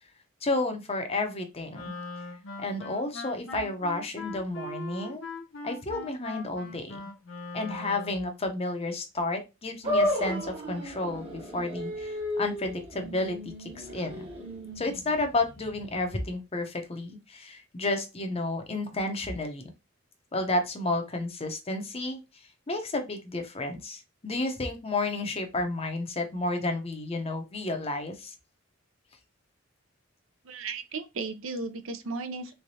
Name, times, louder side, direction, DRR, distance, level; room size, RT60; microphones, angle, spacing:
voice 1, 0.4-1.9 2.6-5.2 5.6-7.0 7.5-14.3 14.8-19.7 20.3-22.2 22.7-28.3, left 2 dB, 30° left, 0.6 m, -31 dB
Wind instrument woodwind instrument, 1.7-8.3, left 2 dB, 70° left, 0.8 m, -41 dB
sound 1, 9.8-16.3, equal, 30° right, 0.8 m, -33 dB
voice 2, 30.4-32.5, right 3 dB, 75° right, 0.5 m, -35 dB
3.3 x 3.3 x 2.7 m
head